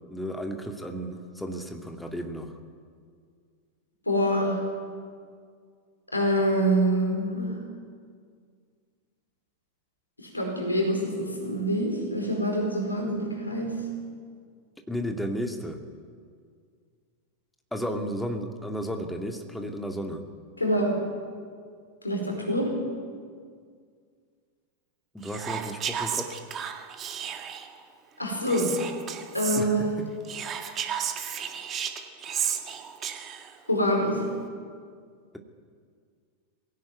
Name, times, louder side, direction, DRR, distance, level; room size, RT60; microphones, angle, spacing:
voice 1, 0.1-2.6 14.9-15.8 17.7-20.2 25.1-26.4 29.6-30.1 30.6-31.0, equal, 5° left, 4 dB, 2.3 m, -33 dB
voice 2, 4.1-4.6 6.1-7.5 10.2-13.8 20.6-21.0 22.0-22.8 28.2-28.7 29.3-29.9 33.7-34.3, equal, 85° left, 1 dB, 4.8 m, -25 dB
Whispering, 25.2-27.7 28.5-29.6 30.2-33.5, right 8 dB, 30° right, 1.8 m, -33 dB
21.5 x 16.5 x 9.3 m, 2.1 s
figure-of-eight pair, 90°, 0 cm